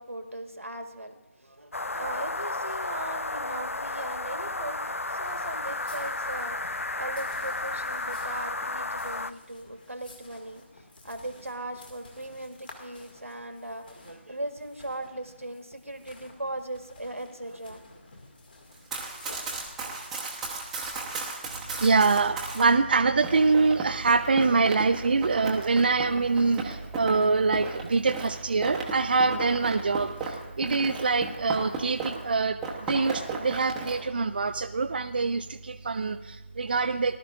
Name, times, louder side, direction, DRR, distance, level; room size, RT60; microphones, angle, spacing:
voice 1, 0.0-17.9, right 1 dB, 85° right, 6 dB, 1.4 m, -39 dB
sound 1, 1.7-9.3, left 2 dB, 80° left, 0.4 m, -33 dB
sound 2, 5.2-20.1, left 2 dB, 45° left, 2.1 m, -52 dB
Run, 18.8-22.7 23.2-32.3 32.6-34.0, right 3 dB, 5° right, 0.9 m, -36 dB
voice 2, 21.8-37.2, right 4 dB, 45° right, 7 dB, 0.4 m, -25 dB
19.0 x 12.0 x 2.5 m, 1.1 s
figure-of-eight pair, 155°, 7 cm